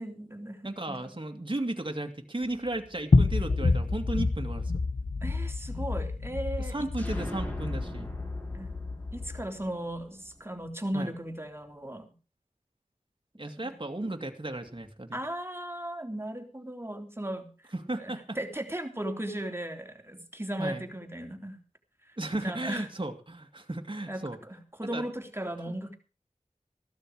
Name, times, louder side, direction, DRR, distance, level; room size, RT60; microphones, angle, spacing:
voice 1, 0.0-0.6 0.9-1.1 5.2-7.2 8.5-8.7 9.1-12.1 13.6-13.7 15.1-17.7 18.0-21.6 22.0-22.2 22.4-22.9 24.1-26.0, right 1 dB, 20° right, 5 dB, 3.3 m, -37 dB
voice 2, 0.6-4.7 6.6-8.1 10.9-11.1 13.4-15.2 17.7-18.4 20.6-20.8 22.2-24.4 24.9-25.0, right 2 dB, 40° right, 4 dB, 2.3 m, -35 dB
sound 1, 3.1-9.4, left 3 dB, 80° left, 1.2 m, -28 dB
sound 2, 7.0-10.7, equal, 15° left, 6.4 m, -40 dB
15.0 x 13.0 x 4.8 m, 0.35 s
wide cardioid pair, 45°, 13 cm